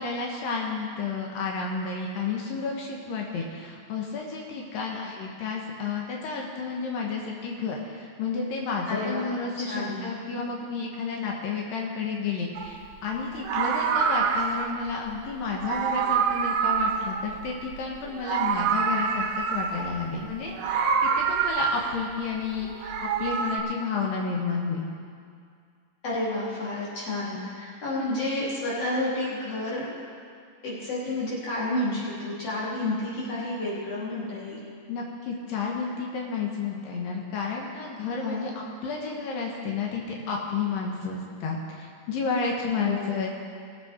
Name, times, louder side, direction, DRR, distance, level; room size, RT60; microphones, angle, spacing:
voice 1, 0.0-24.9 34.9-43.4, left 5 dB, 90° left, -1 dB, 2.9 m, -31 dB
voice 2, 8.9-9.3 9.6-10.0 26.0-29.9 30.6-34.6 38.2-38.5 42.6-43.2, left 2 dB, 50° left, -7 dB, 3.9 m, -30 dB
Meow, 12.6-12.8 13.3-14.8 15.5-17.8 18.1-20.0 20.5-22.1 22.6-23.6, right 6 dB, 85° right, 1.4 m, -26 dB
19.5 x 8.1 x 4.3 m, 2.2 s
omnidirectional pair, 3.8 m